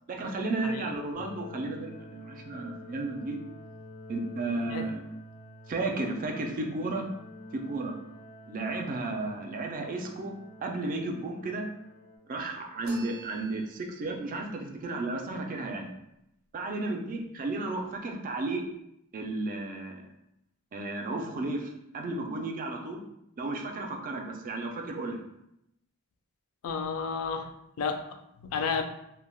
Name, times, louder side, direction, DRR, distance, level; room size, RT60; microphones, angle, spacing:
voice 1, 0.1-3.4 4.1-5.0 5.7-7.1 7.5-7.9 8.5-10.3 10.6-11.7 12.3-15.9 16.5-18.6 19.1-20.0 20.7-23.0 23.4-25.2, right 2 dB, 40° right, 2 dB, 0.4 m, -33 dB
sound 1, 1.1-12.2, left 1 dB, 55° left, 1.0 m, -48 dB
voice 2, 4.6-4.9 26.6-27.5 27.8-28.8, left 5 dB, 75° left, 6 dB, 0.3 m, -32 dB
sound 2, 12.8-14.1, right 3 dB, 80° right, 0.6 m, -47 dB
3.2 x 2.1 x 2.2 m, 0.81 s
head